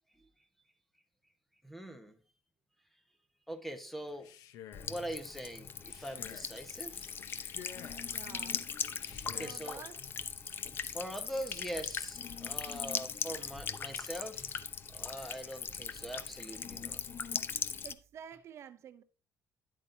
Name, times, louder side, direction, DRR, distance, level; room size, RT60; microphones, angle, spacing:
voice 1, 1.6-2.2 3.5-4.3 4.8-7.2 9.2-9.8 10.8-14.6 14.9-17.0, right 1 dB, 5° left, 1.2 m, -42 dB
Male speech man speaking, 4.1-5.0 5.8-6.6 7.2-8.1 8.9-9.7, left 9 dB, 85° left, 0.9 m, -51 dB
Buzz / Water tap faucet / Trickle dribble, 4.7-17.9, left 7 dB, 35° left, 0.7 m, -39 dB
voice 2, 8.1-8.7 9.3-10.0 17.8-19.0, right 9 dB, 50° right, 0.6 m, -49 dB
sound 1, 9.1-18.4, right 7 dB, 30° right, 3.0 m, -62 dB
11.0 x 8.4 x 2.7 m
cardioid pair, 145°, 6 cm